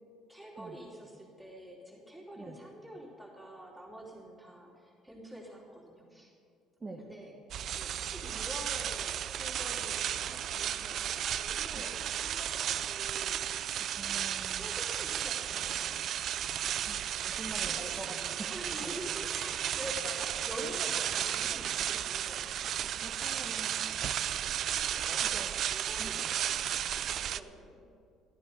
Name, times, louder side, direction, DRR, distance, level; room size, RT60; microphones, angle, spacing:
voice 1, 0.3-6.3 7.0-7.4 7.6-13.8 14.1-16.0 17.6-22.9 24.7-25.3 25.6-27.8, equal, 5° right, -4 dB, 3.2 m, -47 dB
sound 1, 7.5-27.4, right 10 dB, 50° right, 0.4 m, -34 dB
voice 2, 13.8-14.7 16.9-17.0 17.2-18.5 18.8-18.9 23.0-23.9 25.3-25.5 26.0-26.1, right 3 dB, 20° right, 0 dB, 1.1 m, -45 dB
14.0 x 12.5 x 5.1 m, 2.4 s
cardioid pair, 145°, 0 cm